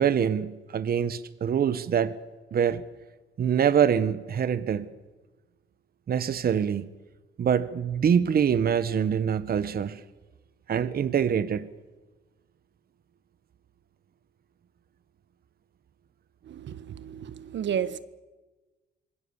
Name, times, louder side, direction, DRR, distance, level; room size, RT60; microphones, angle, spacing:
voice 1, 0.0-2.1 2.5-2.8 3.4-4.9 6.1-6.9 7.4-10.0 10.7-11.7, right 8 dB, 50° right, 1.1 m, -24 dB
voice 2, 16.5-18.0, right 9 dB, 65° right, 1.4 m, -32 dB
26.5 x 21.0 x 7.2 m
cardioid pair, 90°, 20 cm